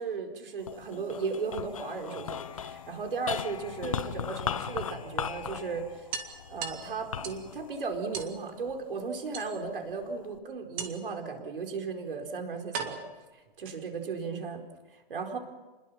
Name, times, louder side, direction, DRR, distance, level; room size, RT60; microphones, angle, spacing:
voice 1, 0.0-6.1 6.5-13.0 13.6-14.6 14.9-15.4, right 5 dB, 65° right, 3 dB, 4.6 m, -36 dB
sound 1, 0.6-9.1 9.6-10.4, left 8 dB, 35° left, 0.7 m, -38 dB
sound 2, 2.1-3.1 4.6-4.7 5.1-5.2 5.5-5.6 6.1-7.5 8.1-8.4 9.3-9.9 10.8-11.2 12.0-12.1 12.7-14.1, right 6 dB, 10° right, 0.8 m, -39 dB
28.0 x 21.0 x 5.9 m, 1.2 s
hypercardioid pair, 180°, 30 cm